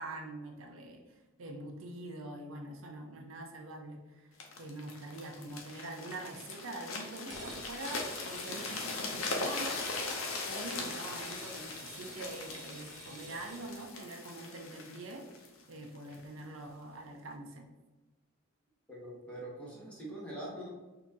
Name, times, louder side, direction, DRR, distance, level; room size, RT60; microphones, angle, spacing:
voice 1, 0.0-9.8 10.5-15.3 15.7-17.7, right 2 dB, 80° right, 2 dB, 0.7 m, -44 dB
sound 1, 4.4-16.2 16.8-17.0, left 3 dB, 85° left, 0.8 m, -40 dB
sound 2, 7.3-13.9, right 2 dB, 40° right, 1.0 m, -51 dB
voice 2, 18.9-20.7, right 1 dB, 5° left, -6 dB, 1.0 m, -43 dB
4.0 x 2.8 x 3.5 m, 1.1 s
head